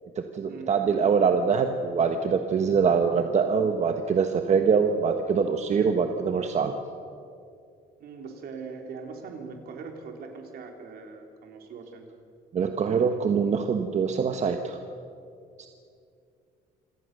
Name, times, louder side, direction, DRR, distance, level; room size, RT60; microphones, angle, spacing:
voice 1, 0.2-6.8 12.5-14.8 15.6-15.7, right 6 dB, 40° right, 6 dB, 1.3 m, -24 dB
voice 2, 8.0-12.0, right 5 dB, 65° right, 3 dB, 3.6 m, -41 dB
27.0 x 17.5 x 6.7 m, 2.5 s
cardioid pair, 110°, 17 cm